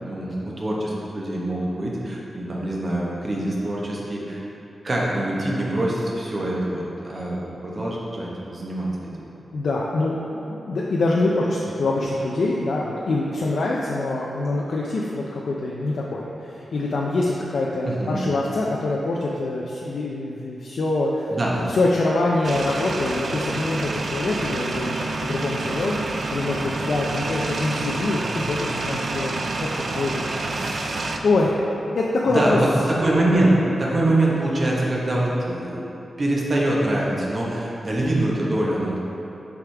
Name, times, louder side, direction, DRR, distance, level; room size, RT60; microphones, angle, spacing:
voice 1, 0.0-4.4 4.8-9.1 17.8-18.2 21.3-21.5 32.3-33.5 33.8-35.8 36.2-39.0, right 1 dB, 40° right, -4 dB, 1.1 m, -24 dB
voice 2, 9.5-21.3 21.5-26.0 26.3-29.3 29.6-31.6 31.9-32.6, left 2 dB, 75° left, -3 dB, 0.5 m, -25 dB
sound 1, 22.4-31.2, right 3 dB, 60° right, 0.4 m, -28 dB
6.9 x 4.8 x 3.4 m, 3.0 s
wide cardioid pair, 105°, 0 cm